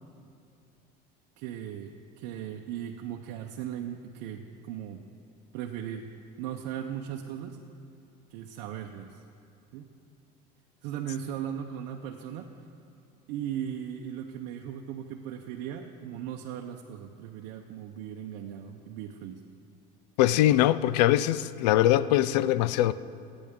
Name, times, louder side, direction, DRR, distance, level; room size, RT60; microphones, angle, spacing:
voice 1, 1.4-5.0 5.5-6.1 6.4-7.6 8.3-9.2 9.7-9.9 10.8-12.5 13.3-19.4, right 9 dB, 75° right, 0.8 m, -37 dB
voice 2, 20.2-22.9, left 13 dB, 90° left, 0.4 m, -22 dB
19.5 x 9.0 x 3.7 m
supercardioid pair, 90°, 21 cm